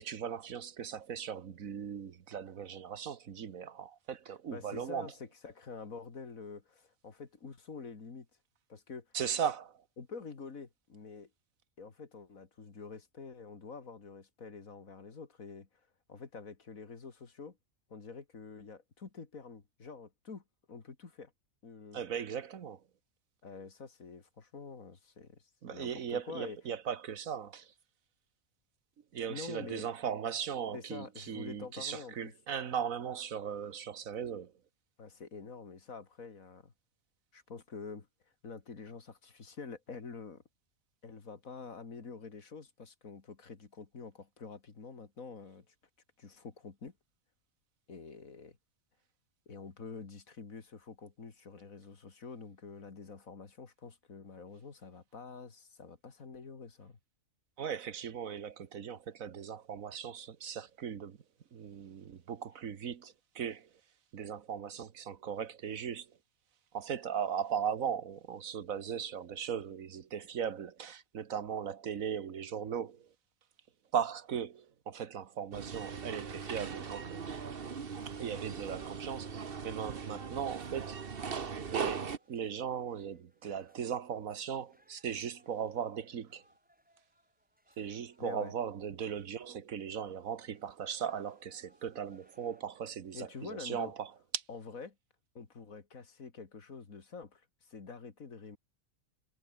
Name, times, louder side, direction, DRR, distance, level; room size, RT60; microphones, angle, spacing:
voice 1, 0.0-5.1 9.1-9.8 21.9-22.8 25.6-27.7 29.1-34.5 57.6-61.2 61.5-63.7 64.1-66.1 66.7-73.1 73.9-77.2 78.0-81.0 81.7-86.4 87.8-94.4, right 8 dB, 80° right, 1.7 m, -38 dB
voice 2, 4.5-8.3 8.7-9.1 10.0-11.3 11.8-15.7 16.1-17.6 17.9-21.3 21.6-22.0 23.4-25.4 25.7-26.6 29.3-29.8 30.7-32.3 35.0-36.7 37.3-38.1 38.4-40.4 41.0-45.7 46.2-46.9 47.9-48.6 49.5-57.0 88.2-88.5 93.1-93.9 94.5-95.0 95.3-98.6, left 4 dB, 85° left, 2.8 m, -47 dB
sound 1, 75.5-82.2, right 6 dB, 45° right, 1.4 m, -40 dB
sound 2, 77.1-90.1 90.4-92.6, equal, 5° right, 6.7 m, -71 dB
omnidirectional pair, 1.4 m